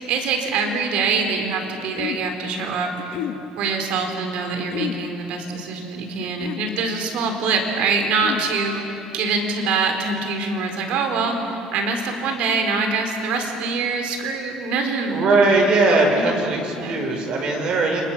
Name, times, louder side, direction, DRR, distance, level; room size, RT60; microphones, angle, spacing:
voice 1, 0.0-3.2 3.6-15.3 16.1-17.0, right 4 dB, 60° right, 4 dB, 4.3 m, -24 dB
sound 1, 1.5-2.3 3.0-3.4 4.6-5.0 6.1-6.7 7.9-8.5, left 10 dB, 60° left, 1.4 m, -31 dB
voice 2, 15.1-18.0, right 3 dB, 40° right, 1 dB, 4.6 m, -19 dB
30.0 x 26.0 x 7.4 m, 2.7 s
cardioid pair, 175°, 2 cm